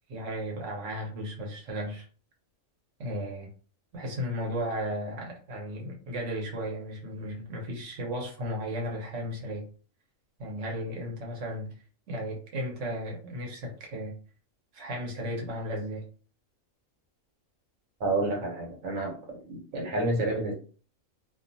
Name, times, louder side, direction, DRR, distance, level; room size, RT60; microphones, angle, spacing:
voice 1, 0.1-2.0 3.0-3.5 3.9-9.6 10.4-11.7 12.1-14.2 14.7-16.0, equal, 65° right, 0 dB, 1.2 m, -35 dB
voice 2, 18.0-19.2 19.4-20.5, right 2 dB, 85° right, 0 dB, 1.4 m, -29 dB
2.6 x 2.3 x 2.6 m, 0.39 s
omnidirectional pair, 1.4 m